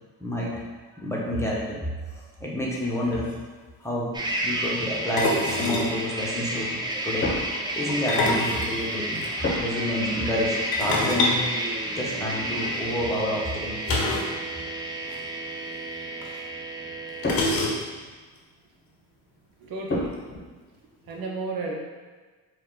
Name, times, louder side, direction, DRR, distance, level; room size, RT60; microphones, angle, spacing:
voice 1, 0.2-0.6 1.0-1.8 2.1-3.3 3.8-6.8 7.0-7.3 7.7-9.2 9.6-11.4 11.9-13.8, left 1 dB, 10° left, -5 dB, 1.0 m, -29 dB
sound 1, 2.8-2.9 3.1-3.4 5.2-6.0 7.9-9.3 10.7-12.4 13.9-14.4 14.6-14.7 15.0-15.2 16.2-16.3 17.2-18.1, left 2 dB, 80° left, 0.8 m, -26 dB
sound 2, 4.1-17.5, right 1 dB, 15° right, 0.5 m, -31 dB
sound 3, 7.2-8.4 9.4-10.0 10.2-10.5 11.4-12.6 13.6-13.7 14.1-14.9 16.7-17.9 19.9-20.4, left 2 dB, 30° left, 0.9 m, -33 dB
voice 2, 19.6-20.2 21.0-21.7, right 3 dB, 80° right, -1 dB, 0.8 m, -33 dB
4.5 x 2.4 x 3.9 m, 1.4 s
cardioid pair, 105°, 35 cm